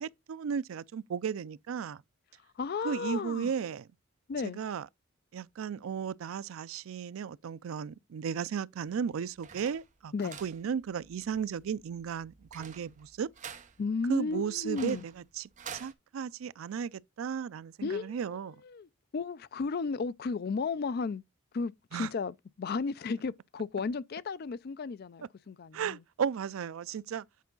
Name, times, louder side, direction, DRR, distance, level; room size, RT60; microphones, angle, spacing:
voice 1, 0.0-2.0 2.8-3.9 4.4-4.9 5.3-10.1 10.4-13.3 14.1-18.6 21.9-22.1 25.7-27.3, right 7 dB, 75° right, 0.4 m, -35 dB
voice 2, 2.6-3.5 4.3-4.6 10.1-10.4 13.8-15.0 17.8-18.9 19.1-21.2 21.5-26.0, left 4 dB, 50° left, 0.4 m, -34 dB
sound 1, 8.9-15.9, right 7 dB, 35° right, 0.8 m, -49 dB
8.3 x 4.7 x 3.8 m
head